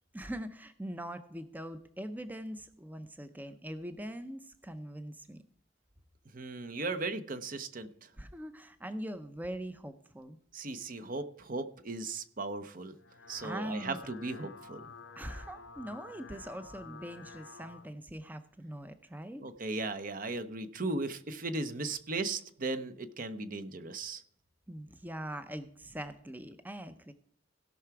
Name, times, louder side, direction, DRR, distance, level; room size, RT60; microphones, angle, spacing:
voice 1, 0.1-5.4 8.2-10.4 13.4-14.0 15.2-19.4 24.7-27.1, equal, 10° right, 10 dB, 0.6 m, -42 dB
voice 2, 6.3-8.1 10.5-12.9 13.3-14.9 19.4-24.2, right 3 dB, 45° right, 10 dB, 0.8 m, -37 dB
sound 1, 12.9-17.9, left 4 dB, 80° left, 0.9 m, -50 dB
17.0 x 5.8 x 4.6 m, 0.65 s
head